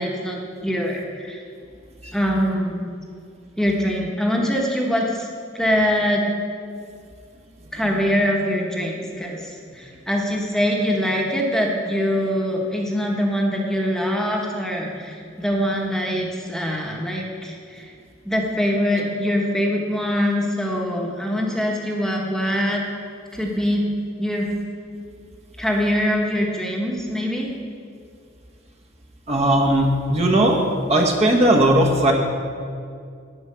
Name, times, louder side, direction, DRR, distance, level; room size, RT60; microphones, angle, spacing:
voice 1, 0.0-1.4 2.1-2.7 3.6-5.3 5.5-6.2 7.7-17.9 18.2-22.8 23.3-23.9 24.2-24.5 25.6-27.5, equal, 5° left, -1 dB, 1.1 m, -23 dB
voice 2, 29.3-30.6 30.9-32.1, right 1 dB, 35° right, 1 dB, 1.0 m, -17 dB
12.0 x 4.8 x 8.4 m, 2.3 s
head